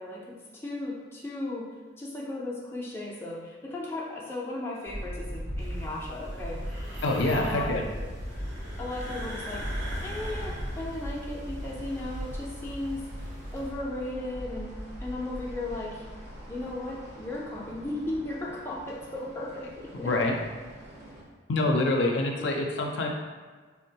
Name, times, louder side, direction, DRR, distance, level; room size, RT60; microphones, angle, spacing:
voice 1, 0.0-6.6 7.3-8.1 8.8-9.7 10.0-13.0 13.5-16.0 16.5-20.1, left 2 dB, 15° left, -4 dB, 0.4 m, -36 dB
sound 1, 4.8-21.2, equal, 35° right, 0.6 m, -39 dB
sound 2, 5.6-13.7, equal, 85° right, 0.8 m, -42 dB
voice 2, 7.0-7.8 19.9-20.3 21.5-23.1, left 2 dB, 80° left, 1 dB, 0.4 m, -26 dB
3.7 x 2.1 x 2.7 m, 1.4 s
head